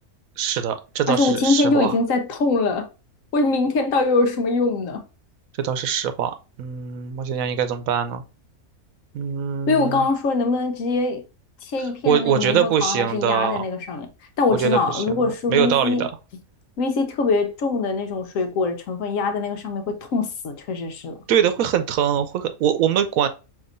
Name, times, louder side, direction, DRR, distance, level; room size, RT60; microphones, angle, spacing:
voice 1, 0.4-1.9 5.6-8.2 9.1-10.1 12.1-13.6 14.6-15.2 15.5-16.1 21.3-23.3, right 8 dB, 75° right, 1.0 m, -23 dB
voice 2, 1.1-2.9 3.3-5.0 9.7-11.2 11.6-14.1 14.4-16.1 16.8-21.1, left 3 dB, 70° left, 1.1 m, -23 dB
5.4 x 2.9 x 2.5 m
omnidirectional pair, 1.5 m